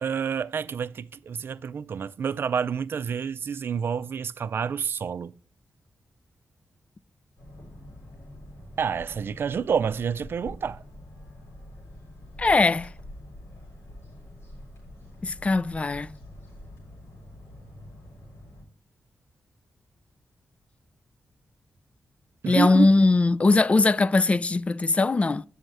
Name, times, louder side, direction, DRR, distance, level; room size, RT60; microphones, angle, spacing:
voice 1, 0.0-5.3 8.8-10.8 22.4-22.9, right 7 dB, 60° right, 0.4 m, -28 dB
sound 1, 7.4-18.6, left 1 dB, 85° left, 4.3 m, -45 dB
voice 2, 12.4-12.9 15.2-16.1 22.5-25.4, left 3 dB, 30° left, 0.3 m, -20 dB
7.7 x 6.3 x 3.3 m
cardioid pair, 80°, 4 cm